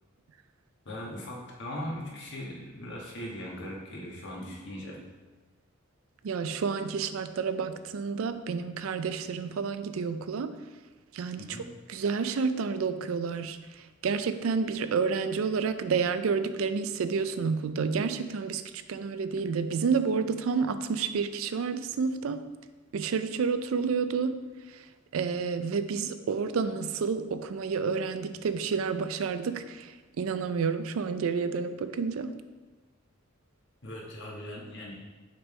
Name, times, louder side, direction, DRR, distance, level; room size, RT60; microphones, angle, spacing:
voice 1, 0.8-5.0 11.4-11.7 33.8-35.0, left 1 dB, 60° left, -3 dB, 1.4 m, -39 dB
voice 2, 6.2-10.6 11.1-18.6 18.9-22.4 22.9-24.4 24.7-24.8 25.1-32.3, right 5 dB, 70° right, 11 dB, 0.4 m, -30 dB
6.0 x 5.3 x 3.2 m, 1.3 s
head